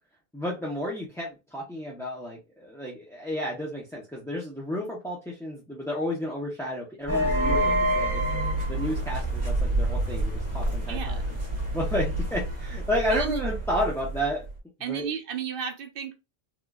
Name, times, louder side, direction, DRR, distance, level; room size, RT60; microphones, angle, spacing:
voice 1, 0.3-8.2 8.7-11.2 11.7-14.5 14.8-15.0, left 1 dB, 5° left, 0.5 m, -31 dB
sound 1, 7.1-14.5, right 1 dB, 15° right, 1.1 m, -27 dB
voice 2, 10.9-11.2 13.1-13.4 14.8-16.2, right 7 dB, 65° right, 0.8 m, -33 dB
3.6 x 2.4 x 2.2 m
omnidirectional pair, 1.0 m